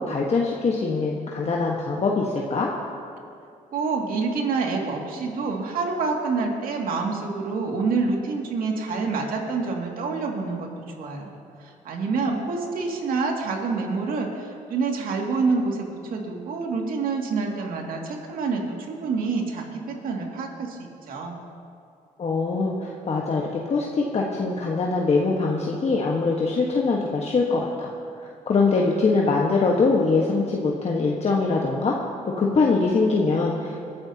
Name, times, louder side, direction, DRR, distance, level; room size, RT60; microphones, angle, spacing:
voice 1, 0.0-2.7 22.2-23.4 23.7-27.9 28.5-31.9 32.2-33.9, left 3 dB, 45° left, -2 dB, 1.5 m, -23 dB
voice 2, 3.7-11.3 11.6-21.4, right 4 dB, 70° right, 0 dB, 2.4 m, -27 dB
23.0 x 13.0 x 2.9 m, 2.4 s
supercardioid pair, 70°, 15 cm